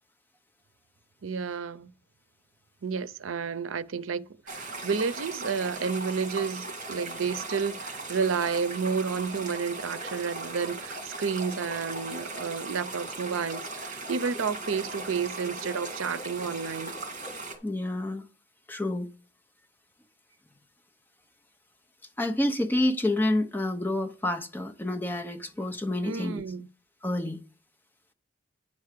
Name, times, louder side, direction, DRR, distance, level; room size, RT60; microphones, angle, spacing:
voice 1, 1.2-1.9 2.8-16.9 26.0-26.7, right 5 dB, 85° right, 0.6 m, -31 dB
sound 1, 4.5-17.6, right 3 dB, 40° right, 2.5 m, -38 dB
voice 2, 17.6-18.2 18.7-19.1 22.2-26.4 27.0-27.4, left 1 dB, 10° left, 0.9 m, -28 dB
9.9 x 4.7 x 6.6 m
head